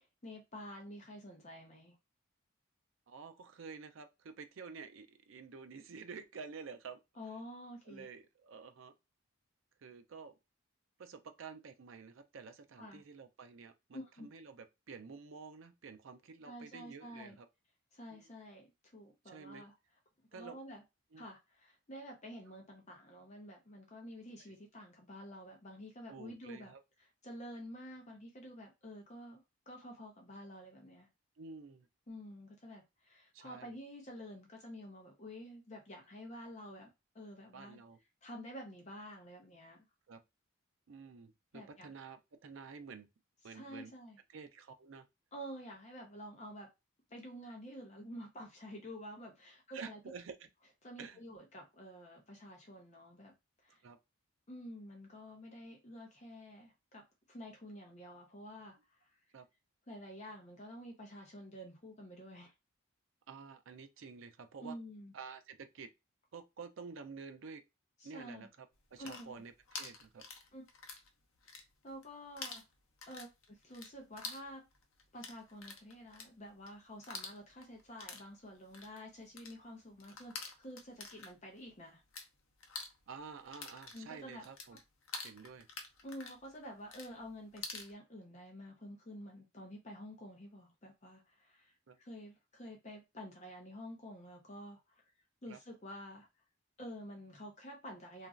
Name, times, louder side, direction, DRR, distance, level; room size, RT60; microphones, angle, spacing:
voice 1, 0.0-2.0 7.1-8.1 12.8-13.0 13.9-14.3 16.4-17.4 17.9-19.7 20.3-20.8 21.2-26.7 27.0-29.4 29.7-31.1 32.1-37.8 38.2-39.8 41.5-41.9 43.4-44.2 45.3-46.7 47.1-50.0 50.8-53.3 53.6-53.8 54.5-59.1 59.9-62.5 64.6-65.1 68.0-68.5 69.0-69.4 70.5-70.6 71.8-72.6 73.1-74.7 75.1-82.0 83.9-84.8 86.0-95.0 95.4-96.3 96.8-98.3, equal, 30° left, 0.6 m, -49 dB
voice 2, 3.1-7.0 7.9-8.9 9.8-10.4 11.0-17.5 18.1-18.3 19.3-19.6 20.3-20.6 21.1-21.2 26.1-26.8 31.4-31.9 33.3-33.7 37.5-38.0 40.1-40.2 40.9-43.1 43.4-43.9 44.3-45.1 49.7-50.4 51.0-51.2 53.8-54.0 59.3-59.5 63.3-64.8 65.1-65.9 66.3-67.6 68.0-70.2 83.1-84.8 85.2-85.7 91.9-92.0 95.5-95.6, right 5 dB, 65° right, 0.4 m, -50 dB
sound 1, 68.8-71.1 71.4-72.1 72.4-82.3 82.6-87.9, left 4 dB, 75° left, 0.6 m, -48 dB
2.9 x 2.4 x 2.4 m
head